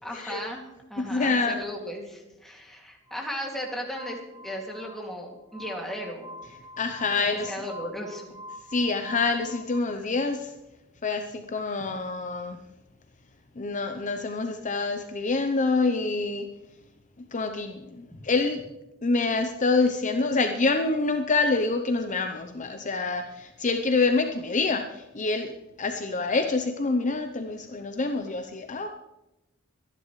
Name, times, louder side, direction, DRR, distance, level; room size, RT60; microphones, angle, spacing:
voice 1, 0.0-6.3 7.2-8.2, equal, ahead, -1 dB, 2.4 m, -36 dB
voice 2, 1.0-1.6 6.8-7.5 8.7-10.5 11.0-12.6 13.6-16.5 17.3-18.6 19.0-25.5 25.8-28.9, left 3 dB, 35° left, 6 dB, 0.7 m, -26 dB
Glass, 3.1-9.8, left 1 dB, 20° right, 2.1 m, -45 dB
24.0 x 10.5 x 3.2 m, 0.96 s
head